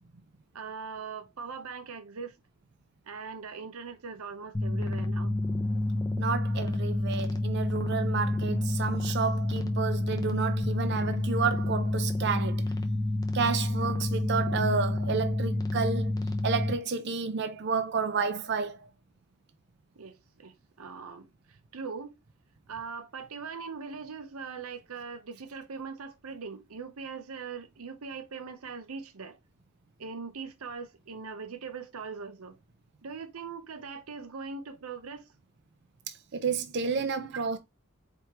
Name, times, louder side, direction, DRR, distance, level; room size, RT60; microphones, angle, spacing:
voice 1, 0.5-2.3 3.1-5.3 20.0-21.3 21.7-22.1 22.7-29.4 30.0-32.6 33.0-35.3 37.3-37.4, right 5 dB, 90° right, 0.7 m, -41 dB
sound 1, 4.5-16.7, left 1 dB, 15° left, 0.6 m, -29 dB
voice 2, 6.2-12.7 13.3-18.9 36.1-37.6, right 5 dB, 50° right, 0.5 m, -31 dB
4.5 x 3.4 x 3.0 m
head